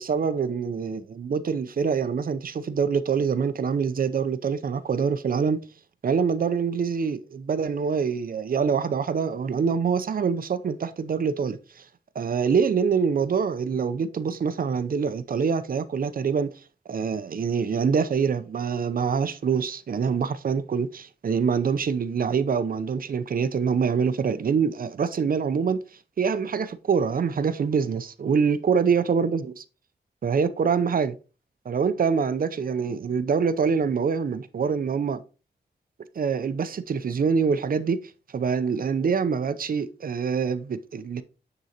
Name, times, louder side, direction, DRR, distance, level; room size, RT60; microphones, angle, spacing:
voice 1, 0.0-5.6 6.0-11.8 12.2-16.5 16.9-25.8 26.2-29.6 30.2-31.1 31.7-35.2 36.2-38.0 38.3-41.2, right 6 dB, 55° right, 0.5 m, -25 dB
9.4 x 3.9 x 2.8 m
wide cardioid pair, 95°, 18 cm